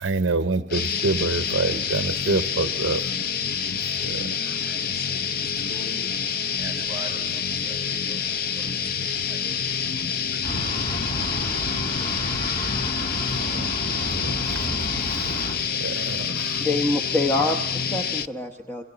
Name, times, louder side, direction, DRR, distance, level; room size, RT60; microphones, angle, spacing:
voice 1, 0.0-3.0 3.9-4.6 13.2-16.7, right 3 dB, 65° right, 9 dB, 0.7 m, -28 dB
sound 1, 0.7-18.3, left 7 dB, 45° left, 0.6 m, -27 dB
voice 2, 4.2-6.0 6.4-12.4, right 2 dB, 20° right, 0 dB, 7.2 m, -45 dB
sound 2, 10.4-15.6, equal, 30° left, 3.2 m, -32 dB
voice 3, 16.6-18.8, left 2 dB, 10° left, 2 dB, 1.0 m, -25 dB
27.5 x 25.0 x 4.0 m, 1.0 s
head